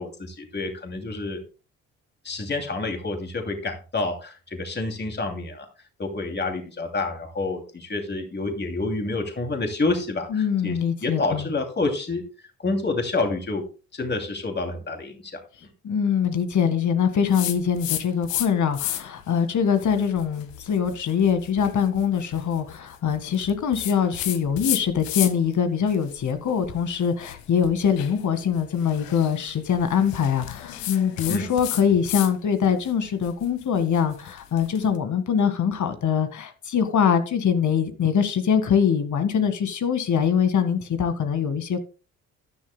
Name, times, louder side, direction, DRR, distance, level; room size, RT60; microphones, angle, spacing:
voice 1, 0.0-1.4 2.2-5.7 6.0-12.2 12.6-13.6 13.9-15.7 31.3-31.4, left 3 dB, 30° left, 2.7 m, -28 dB
voice 2, 10.3-11.5 15.8-41.8, left 7 dB, 50° left, 1.8 m, -23 dB
sound 1, 17.3-18.5 18.7-19.2 19.8-25.5 25.9-32.3 32.6-34.8, left 13 dB, 70° left, 1.2 m, -33 dB
14.0 x 11.0 x 2.2 m
hypercardioid pair, 45°, 37 cm